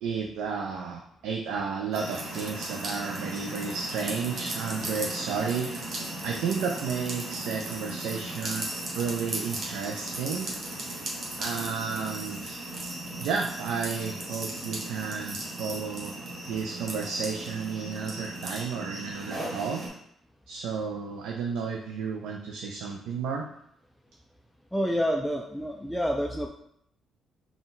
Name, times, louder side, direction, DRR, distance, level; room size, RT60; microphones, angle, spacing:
voice 1, 0.0-5.8 6.2-8.7 8.9-10.5 11.4-12.6 13.2-16.1 16.5-19.8 20.5-23.5, right 5 dB, 90° right, 1 dB, 0.4 m, -32 dB
sound 1, 1.9-19.9, right 2 dB, 50° right, 1.3 m, -36 dB
voice 2, 24.7-26.5, equal, ahead, 1 dB, 0.3 m, -28 dB
4.1 x 2.3 x 3.8 m, 0.71 s
cardioid pair, 90°, 0 cm